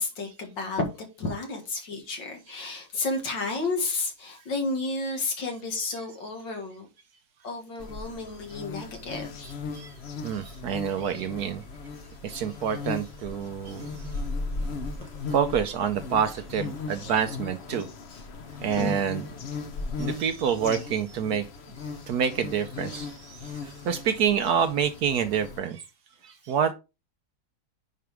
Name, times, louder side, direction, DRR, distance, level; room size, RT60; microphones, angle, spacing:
voice 1, 0.0-6.9 7.4-9.3 10.3-10.6 14.5-15.1 18.1-18.2 18.8-19.1 21.9-22.1, left 3 dB, 70° left, 2.5 m, -32 dB
sound 1, 7.8-25.6, left 4 dB, 50° left, 0.7 m, -37 dB
voice 2, 9.4-9.9 10.2-11.6 12.2-14.2 15.3-17.9 18.6-19.3 20.0-21.5 22.1-25.8 26.2-26.7, right 8 dB, 65° right, 1.0 m, -27 dB
9.5 x 4.7 x 3.4 m
omnidirectional pair, 2.0 m